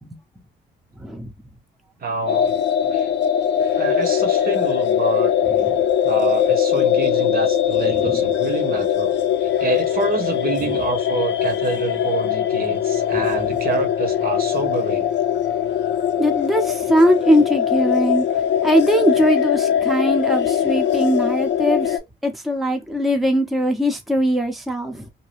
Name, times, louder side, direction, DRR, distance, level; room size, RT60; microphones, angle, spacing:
voice 1, 1.0-1.3 5.6-5.9 7.9-8.2 13.1-13.2 16.2-18.3 18.6-22.0 22.2-25.1, equal, ahead, 0.7 m, -20 dB
voice 2, 2.0-2.6 2.9-3.1 3.7-5.3 6.0-9.1 9.4-15.1, right 3 dB, 50° right, 0.8 m, -26 dB
sound 1, 2.3-22.0, left 9 dB, 65° left, 0.5 m, -21 dB
2.7 x 2.2 x 3.3 m
cardioid pair, 90°, 20 cm